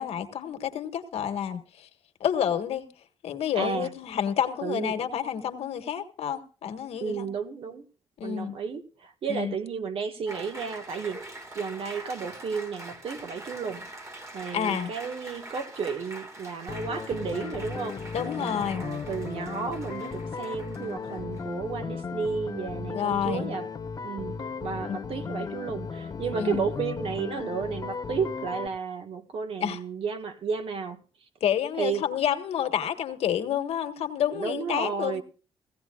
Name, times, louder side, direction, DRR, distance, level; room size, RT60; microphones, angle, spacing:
voice 1, 0.0-1.9 2.2-2.9 3.2-7.3 8.2-8.6 9.3-9.5 14.5-14.9 18.1-18.8 22.9-23.5 24.9-25.1 26.4-26.6 29.6-29.8 31.4-35.2, left 9 dB, 80° left, 1.5 m, -29 dB
voice 2, 3.5-3.9 4.6-5.1 7.0-7.9 8.2-11.2 11.5-13.9 14.3-18.0 18.4-23.7 24.0-31.0 31.8-32.2 34.3-35.2, right 6 dB, 65° right, 1.7 m, -33 dB
Applause, 10.3-21.6, right 1 dB, 30° right, 2.7 m, -44 dB
sound 1, 16.7-28.7, left 5 dB, 35° left, 1.2 m, -36 dB
17.5 x 15.5 x 2.5 m
cardioid pair, 115°, 10 cm